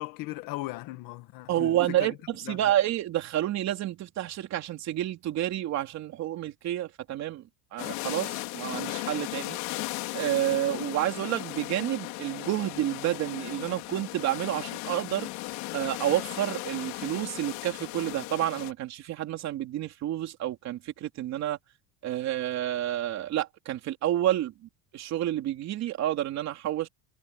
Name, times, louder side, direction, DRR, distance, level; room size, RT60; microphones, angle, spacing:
voice 1, 0.0-2.2 2.4-2.7, left 19 dB, 55° left, 1.5 m, -38 dB
voice 2, 1.5-7.4 7.7-9.6 9.8-15.3 15.7-21.6 22.0-26.9, right 13 dB, 40° right, 3.4 m, -29 dB
sound 1, 7.8-18.7, left 23 dB, 80° left, 3.1 m, -36 dB
cardioid pair, 170°, 40 cm